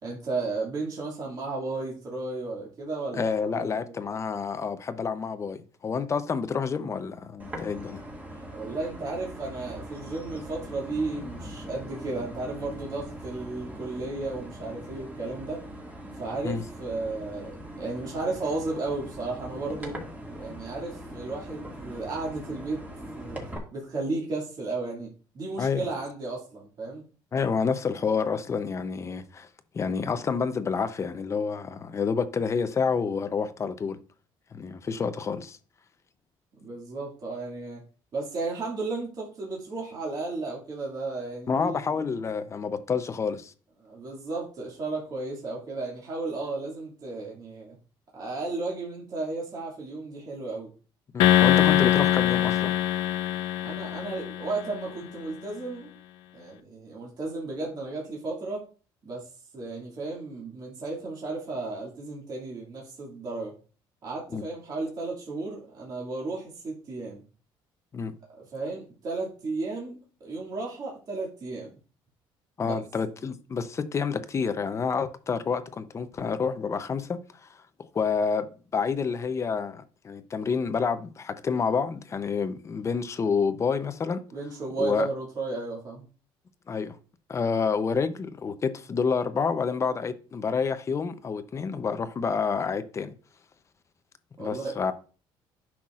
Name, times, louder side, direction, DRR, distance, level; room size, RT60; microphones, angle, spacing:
voice 1, 0.0-3.9 8.5-15.6 16.1-20.0 20.3-22.8 23.1-23.4 23.7-27.0 36.6-37.8 38.1-41.8 43.8-47.8 48.1-50.7 53.6-55.9 56.3-58.7 59.0-63.6 64.0-67.2 68.4-71.8 72.6-72.8 84.3-86.0 94.4-94.7, right 3 dB, 45° right, 2.2 m, -34 dB
voice 2, 3.2-8.0 16.4-16.6 25.6-25.8 27.3-29.5 29.7-34.0 34.5-35.6 41.5-43.5 51.1-52.7 64.3-64.4 67.9-68.1 72.6-77.5 77.9-84.2 84.8-85.1 86.7-87.0 87.3-93.1 94.4-94.9, left 5 dB, 30° left, 0.7 m, -28 dB
sound 1, 7.4-23.6, equal, 15° right, 2.0 m, -41 dB
sound 2, 51.2-54.7, left 13 dB, 85° left, 0.6 m, -22 dB
10.5 x 5.9 x 2.5 m
cardioid pair, 115°, 9 cm